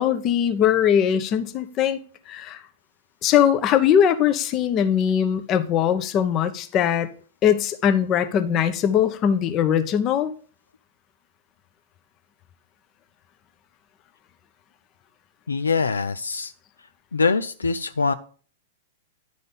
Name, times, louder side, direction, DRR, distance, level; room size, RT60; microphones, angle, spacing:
voice 1, 0.0-2.0 2.3-2.6 3.2-7.1 7.4-10.3, left 9 dB, 35° left, 10 dB, 0.8 m, -21 dB
voice 2, 15.5-16.5 17.1-18.1, left 4 dB, 85° left, 11 dB, 0.4 m, -23 dB
10.0 x 3.9 x 5.2 m, 0.43 s
hypercardioid pair, 105°, 0 cm